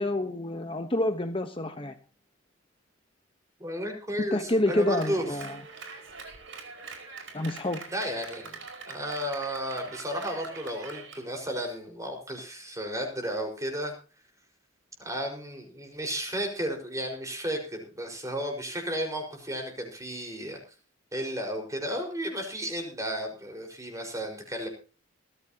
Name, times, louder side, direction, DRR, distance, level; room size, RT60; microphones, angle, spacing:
voice 1, 0.0-1.9 4.3-5.6 7.3-7.8, left 1 dB, 25° left, 7 dB, 1.1 m, -28 dB
voice 2, 3.6-5.2 7.9-8.6 8.9-13.9 15.0-20.6 21.1-24.7, equal, 15° right, 3 dB, 5.0 m, -33 dB
Clapping, 4.7-11.2, right 4 dB, 70° right, 5.0 m, -44 dB
21.0 x 14.5 x 2.9 m, 0.36 s
head